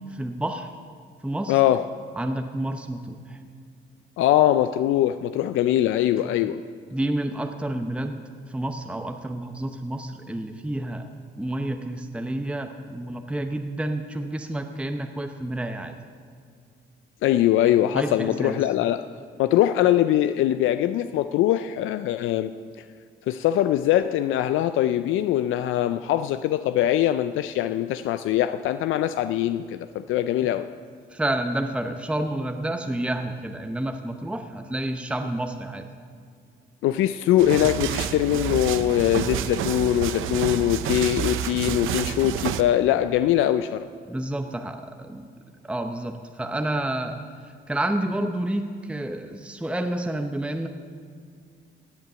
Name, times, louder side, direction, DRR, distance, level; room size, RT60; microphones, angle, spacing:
voice 1, 0.1-0.7 1.2-1.6 2.1-3.4 6.2-6.3 6.9-8.2 8.5-11.1 11.4-15.9 17.9-18.6 31.1-35.9 44.1-45.3 45.6-47.2 47.4-50.7, right 1 dB, 5° right, 6 dB, 0.8 m, -29 dB
voice 2, 1.5-1.8 4.2-6.6 17.2-19.0 19.4-22.5 23.3-30.7 36.8-43.9, left 12 dB, 85° left, 11 dB, 0.4 m, -22 dB
sound 1, 37.4-42.6, right 10 dB, 85° right, 0.6 m, -29 dB
16.5 x 8.2 x 6.9 m, 2.2 s
cardioid pair, 90°, 20 cm